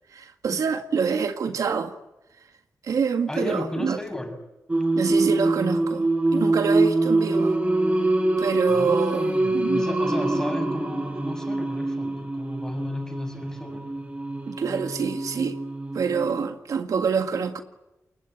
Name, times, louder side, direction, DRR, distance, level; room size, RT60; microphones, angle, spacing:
voice 1, 0.1-1.9 2.8-4.0 4.9-7.5 8.4-9.9 14.4-15.6 15.9-17.6, right 6 dB, 85° right, 1.8 m, -26 dB
voice 2, 3.3-4.4 8.7-13.9, left 1 dB, 10° left, 6.8 m, -33 dB
Singing, 4.7-16.4, right 2 dB, 25° right, 4.4 m, -25 dB
28.5 x 21.5 x 9.1 m
cardioid pair, 70°, 6 cm